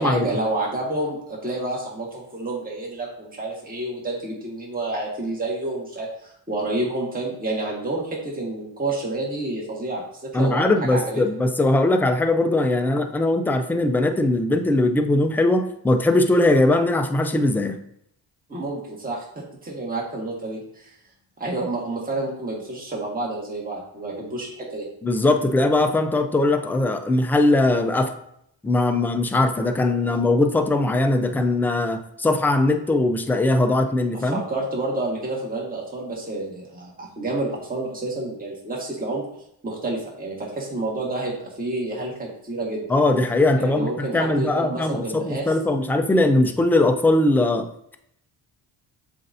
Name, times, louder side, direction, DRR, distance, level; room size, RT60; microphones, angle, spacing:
voice 1, 0.0-11.2 18.5-20.9 21.4-24.8 31.3-31.4 34.1-39.2 39.6-42.8 43.5-45.4, right 2 dB, 20° right, -3 dB, 1.6 m, -29 dB
voice 2, 10.3-17.8 25.0-28.1 28.6-34.4 42.9-47.7, left 2 dB, 5° left, 6 dB, 0.3 m, -20 dB
7.4 x 2.6 x 2.7 m, 0.74 s
cardioid pair, 65°, 46 cm